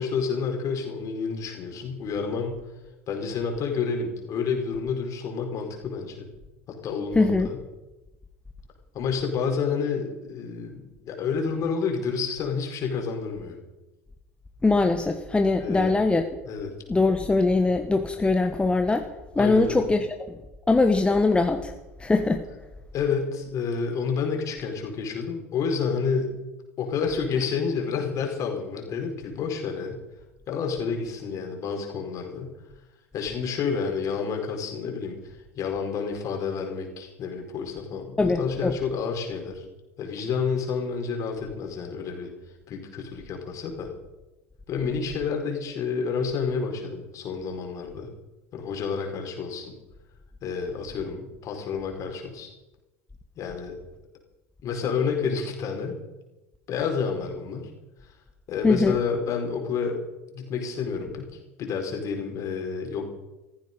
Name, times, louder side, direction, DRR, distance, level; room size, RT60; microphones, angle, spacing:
voice 1, 0.0-2.6 3.1-6.3 6.7-7.6 8.9-13.6 15.6-15.9 16.5-16.7 19.4-19.8 22.9-26.3 26.8-30.0 30.5-32.5 33.1-39.6 40.0-42.3 42.7-43.9 44.7-48.1 48.5-49.7 50.4-52.5 53.3-53.7 54.6-56.0 56.7-57.6 58.0-58.1 58.5-60.0 60.3-61.3 61.6-63.0, left 5 dB, 45° left, 2 dB, 4.7 m, -29 dB
voice 2, 7.1-7.5 14.6-16.2 16.9-19.1 19.3-20.4 20.7-21.7 22.0-22.4 38.2-38.7 58.6-59.0, left 3 dB, 15° left, 5 dB, 1.4 m, -22 dB
15.5 x 14.5 x 5.4 m, 1.0 s
hypercardioid pair, 75°, 7 cm